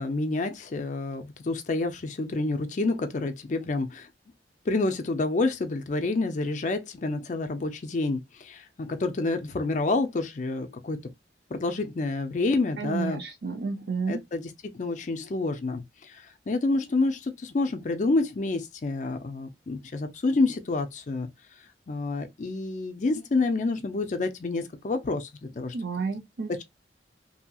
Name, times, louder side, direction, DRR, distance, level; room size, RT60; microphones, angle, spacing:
voice 1, 0.0-4.1 4.7-11.0 11.5-13.2 14.1-15.8 16.1-21.3 21.9-25.7, left 3 dB, 45° left, 0.4 m, -28 dB
voice 2, 12.8-14.2 25.7-26.6, right 4 dB, 60° right, 0.5 m, -31 dB
2.8 x 2.7 x 2.2 m
head